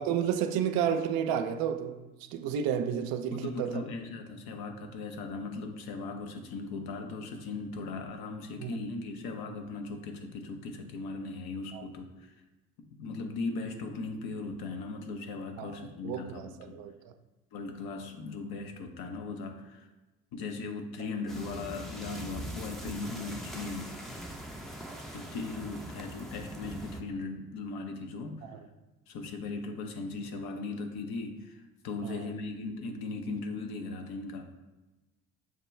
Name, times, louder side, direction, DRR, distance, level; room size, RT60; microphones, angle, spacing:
voice 1, 0.0-3.8 8.6-8.8 11.7-11.8 15.6-15.8 16.0-17.1 28.4-28.6 32.0-32.4, right 8 dB, 60° right, 0.5 m, -32 dB
voice 2, 3.2-12.3 12.8-16.8 17.5-19.9 20.3-23.9 25.1-28.5 29.1-34.5, left 3 dB, 60° left, 0.7 m, -38 dB
sound 1, 21.3-27.0, equal, ahead, 0.6 m, -42 dB
6.3 x 2.2 x 3.1 m
hypercardioid pair, 50°, 42 cm